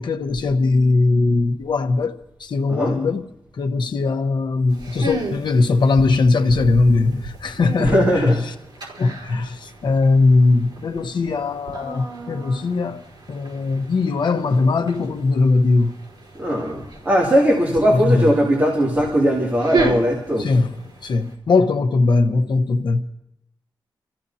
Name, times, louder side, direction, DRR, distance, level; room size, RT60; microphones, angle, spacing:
voice 1, 0.0-2.1 2.4-3.3 3.6-8.4 9.0-9.6 9.8-13.0 13.3-16.0 18.0-18.3 20.4-20.7 21.0-23.0, left 3 dB, 65° left, 1.0 m, -19 dB
sound 1, 4.7-21.3, right 2 dB, 75° right, 4.4 m, -33 dB
voice 2, 7.8-8.4 16.4-20.5, equal, 25° right, 2.5 m, -19 dB
27.5 x 15.0 x 2.8 m
wide cardioid pair, 155°, 8 cm